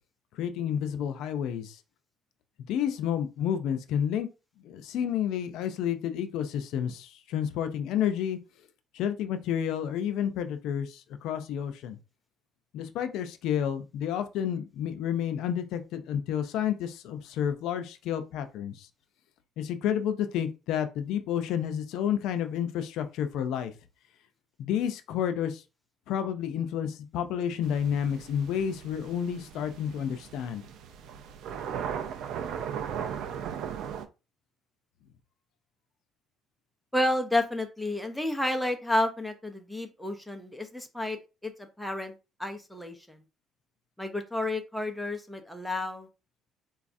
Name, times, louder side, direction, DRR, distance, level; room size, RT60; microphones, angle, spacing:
voice 1, 0.3-1.8 2.7-4.3 4.6-8.4 8.9-12.0 12.7-18.9 19.6-23.7 24.6-25.6 26.1-30.6, left 9 dB, 75° left, 0.4 m, -30 dB
sound 1, 27.6-34.1, right 8 dB, 70° right, 0.4 m, -37 dB
voice 2, 36.9-42.1 42.4-43.2 44.0-46.1, left 1 dB, ahead, 0.6 m, -31 dB
4.0 x 2.3 x 2.5 m
cardioid pair, 120°, 0 cm